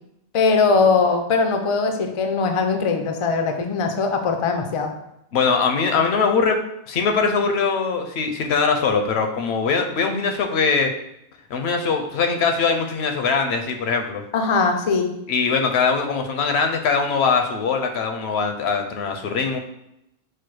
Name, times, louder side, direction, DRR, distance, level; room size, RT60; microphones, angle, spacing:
voice 1, 0.3-4.9 14.3-15.1, left 4 dB, 55° left, 5 dB, 0.3 m, -20 dB
voice 2, 5.3-6.6 6.9-10.9 11.5-14.2 15.3-19.6, left 5 dB, 75° left, 4 dB, 0.8 m, -21 dB
4.5 x 2.0 x 4.6 m, 0.82 s
omnidirectional pair, 1.1 m